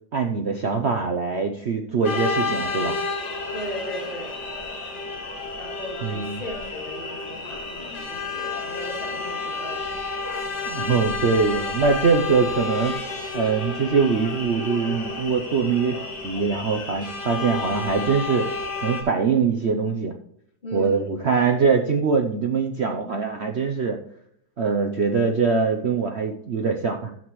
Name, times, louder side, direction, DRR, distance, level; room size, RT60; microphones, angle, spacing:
voice 1, 0.1-3.0 6.0-6.4 10.6-12.9 13.3-18.5 18.8-20.1 20.7-24.0 24.6-27.1, right 5 dB, 55° right, 4 dB, 0.8 m, -23 dB
sound 1, 2.0-19.0, left 3 dB, 70° left, 2.3 m, -31 dB
voice 2, 3.5-4.4 5.6-9.9 20.6-21.2, equal, 30° left, -3 dB, 3.1 m, -37 dB
12.0 x 7.8 x 3.1 m, 0.70 s
omnidirectional pair, 1.9 m